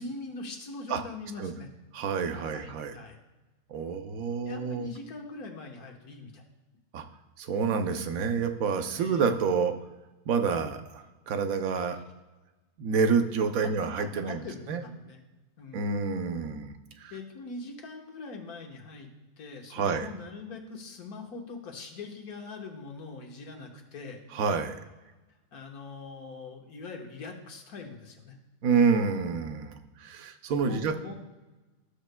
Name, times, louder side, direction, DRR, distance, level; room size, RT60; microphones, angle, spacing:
voice 1, 0.0-1.7 2.4-3.2 4.5-6.4 8.9-9.3 13.6-13.7 14.0-15.2 15.6-15.8 17.1-19.1 19.4-24.2 25.5-28.4 30.7-31.2, left 3 dB, 85° left, 2 dB, 1.7 m, -42 dB
voice 2, 1.9-3.0 3.7-4.9 6.9-7.0 7.4-9.7 10.3-12.0 12.8-14.4 14.7-14.8 15.7-17.1 19.7-20.1 24.3-24.8 28.6-30.9, right 5 dB, 75° right, 7 dB, 1.1 m, -28 dB
13.5 x 6.5 x 2.2 m, 1.1 s
omnidirectional pair, 1.5 m